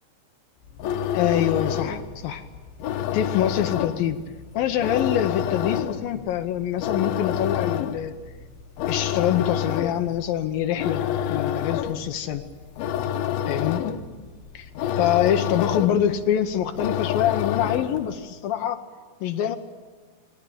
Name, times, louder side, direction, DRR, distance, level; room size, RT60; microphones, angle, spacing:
sound 1, 0.7-18.1, left 9 dB, 75° left, 2.4 m, -28 dB
voice 1, 1.1-2.4 3.1-4.2 4.5-8.1 8.9-11.0 11.3-12.4 13.5-13.8 14.5-14.7 15.0-18.8 19.2-19.6, left 10 dB, 90° left, 6 dB, 2.0 m, -25 dB
28.5 x 20.0 x 8.5 m, 1.5 s
omnidirectional pair, 5.5 m